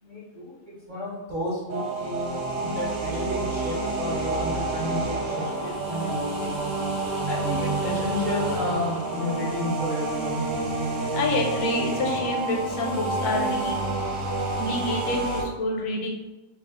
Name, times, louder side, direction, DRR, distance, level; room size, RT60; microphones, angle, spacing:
voice 1, 0.0-2.4 2.7-6.5 7.2-10.6, left 1 dB, 40° right, -7 dB, 0.7 m, -32 dB
sound 1, 1.7-15.4, right 2 dB, 60° right, 1.0 m, -28 dB
voice 2, 11.1-13.8 14.6-16.1, left 2 dB, 85° left, 0 dB, 1.1 m, -27 dB
2.8 x 2.2 x 3.6 m, 1.1 s
omnidirectional pair, 1.6 m